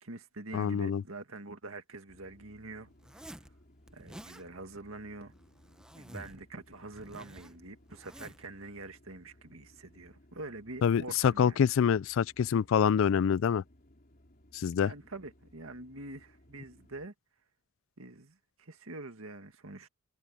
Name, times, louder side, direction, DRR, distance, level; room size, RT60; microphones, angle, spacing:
voice 1, 0.0-3.5 3.9-5.3 6.0-11.6 14.8-17.1 18.0-19.9, right 2 dB, 75° right, 2.0 m, -45 dB
voice 2, 0.5-1.0 10.8-13.6 14.5-14.9, left 7 dB, 65° left, 0.3 m, -26 dB
sound 1, 2.1-17.1, left 1 dB, 45° left, 3.9 m, -61 dB
Zipper (clothing), 3.0-3.5 3.9-4.4 5.3-6.4 6.7-8.5, equal, 5° right, 0.8 m, -50 dB
head